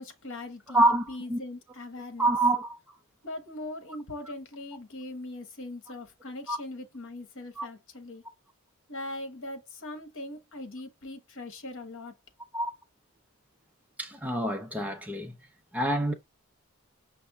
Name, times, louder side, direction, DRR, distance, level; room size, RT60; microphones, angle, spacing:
voice 1, 0.0-2.3 3.2-8.2 8.9-12.1, left 2 dB, 60° left, 1.2 m, -40 dB
voice 2, 0.7-1.4 2.2-2.8 6.5-6.6 7.6-7.7 12.5-12.7 14.0-15.4 15.7-16.1, right 2 dB, 5° right, 0.6 m, -26 dB
5.3 x 2.2 x 3.6 m
head